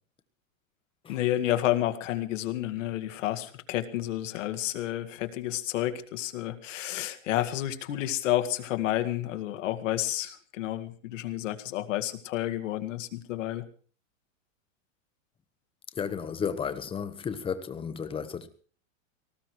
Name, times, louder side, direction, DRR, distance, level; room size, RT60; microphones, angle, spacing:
voice 1, 1.1-13.7, left 13 dB, 70° left, 2.1 m, -30 dB
voice 2, 15.9-18.5, left 6 dB, 15° left, 1.1 m, -33 dB
19.0 x 15.0 x 4.7 m
supercardioid pair, 155°, 39 cm